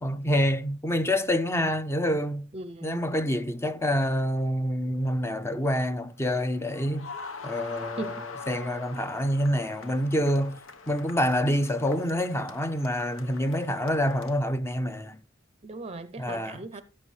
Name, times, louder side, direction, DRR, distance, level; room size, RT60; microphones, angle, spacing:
voice 1, 0.0-2.5 2.8-7.1 7.4-8.1 8.5-15.2 16.2-16.6, equal, 15° left, 0.7 m, -27 dB
voice 2, 2.5-3.1 8.0-8.1 15.6-16.8, right 2 dB, 30° right, 0.6 m, -38 dB
sound 1, 5.0-14.4, left 4 dB, 85° left, 1.1 m, -44 dB
16.5 x 7.3 x 3.2 m
head